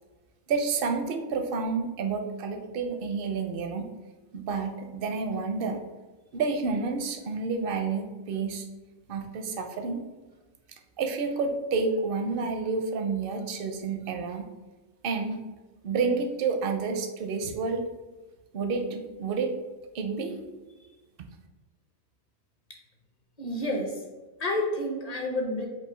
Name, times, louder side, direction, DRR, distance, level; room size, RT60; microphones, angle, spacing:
voice 1, 0.5-3.9 4.3-5.8 6.3-8.6 9.1-10.0 11.0-14.5 15.0-15.4 15.8-17.8 18.5-19.5 19.9-20.4, right 4 dB, 60° right, 5 dB, 0.6 m, -29 dB
voice 2, 23.4-23.9 24.4-25.7, left 1 dB, 40° left, 1 dB, 0.7 m, -29 dB
4.9 x 2.6 x 3.7 m, 1.2 s
omnidirectional pair, 1.4 m